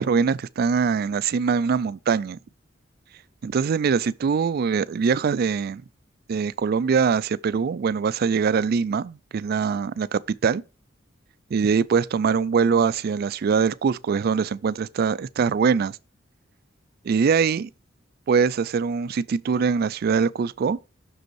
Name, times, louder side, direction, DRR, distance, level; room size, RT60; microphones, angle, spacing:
voice 1, 0.0-2.4 3.4-5.8 6.3-10.6 11.5-16.0 17.0-17.7 18.3-20.8, right 6 dB, 50° right, 0.3 m, -23 dB
6.3 x 5.2 x 4.6 m
head